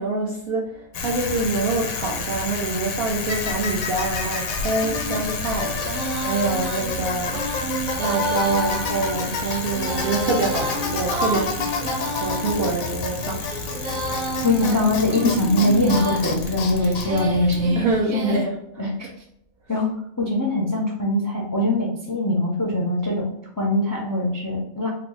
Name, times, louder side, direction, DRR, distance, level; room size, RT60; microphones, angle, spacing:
voice 1, 0.0-7.4 8.0-11.6 11.9-13.5 17.7-18.6, right 3 dB, 65° right, -1 dB, 0.6 m, -26 dB
Bicycle, 0.9-18.0, left 4 dB, 85° left, 1.1 m, -29 dB
Female singing, 4.8-18.4, right 1 dB, 85° right, 1.1 m, -31 dB
sound 1, 10.1-15.2, left 2 dB, 45° right, 1.0 m, -40 dB
voice 2, 14.4-17.7 18.1-18.3 18.8-18.9 19.7-19.9 20.2-23.3 23.6-24.9, left 1 dB, 30° left, -2 dB, 0.3 m, -22 dB
3.9 x 2.3 x 3.1 m, 0.73 s
omnidirectional pair, 1.4 m